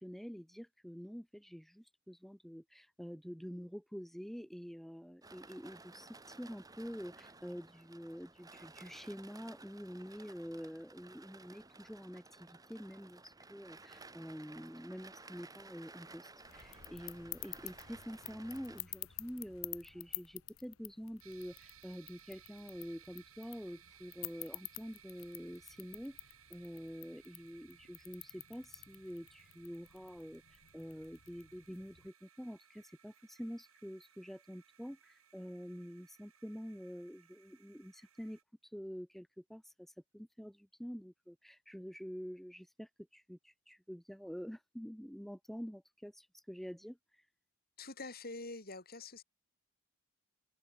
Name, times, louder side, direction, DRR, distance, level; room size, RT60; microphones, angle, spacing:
voice 1, 0.0-26.2 26.5-47.2, equal, ahead, 1.2 m, -47 dB
sound 1, 5.2-18.8, right 3 dB, 15° right, 1.5 m, -56 dB
sound 2, 16.4-32.1, left 17 dB, 75° left, 1.5 m, -50 dB
sound 3, 21.2-38.4, right 9 dB, 75° right, 6.5 m, -63 dB
voice 2, 47.8-49.2, left 3 dB, 45° left, 6.2 m, -46 dB
head